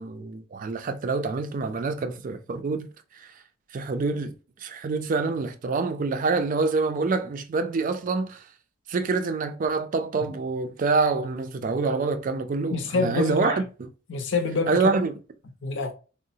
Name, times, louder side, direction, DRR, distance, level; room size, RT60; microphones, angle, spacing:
voice 1, 0.0-2.9 3.1-3.3 3.7-4.3 4.6-8.4 8.9-13.9 14.7-15.2, right 4 dB, 40° right, 0.4 m, -26 dB
voice 2, 12.7-13.6 14.1-14.9 15.6-15.9, left 4 dB, 65° left, 0.6 m, -26 dB
3.7 x 2.0 x 2.7 m
head